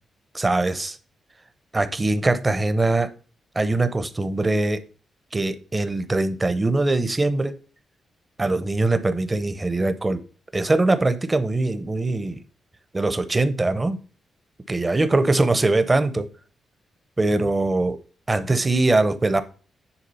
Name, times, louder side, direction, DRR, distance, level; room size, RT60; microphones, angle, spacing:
voice 1, 0.3-1.0 1.7-3.1 3.6-4.8 5.3-7.5 8.4-10.2 10.5-12.4 12.9-14.0 14.7-16.2 17.2-18.0 18.3-19.4, right 2 dB, 20° right, 0.8 m, -22 dB
9.9 x 3.6 x 5.5 m
cardioid pair, 120°, 0 cm